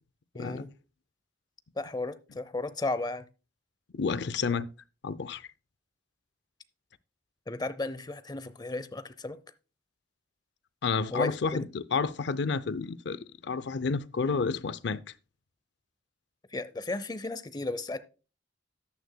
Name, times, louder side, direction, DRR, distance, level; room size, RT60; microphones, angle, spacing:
voice 1, 0.3-0.7 1.8-3.3 7.5-9.4 11.1-11.7 16.5-18.0, left 2 dB, 20° left, 0.7 m, -34 dB
voice 2, 3.9-4.7 5.0-5.5 10.8-15.0, left 5 dB, 65° left, 0.5 m, -30 dB
13.5 x 9.4 x 2.2 m
head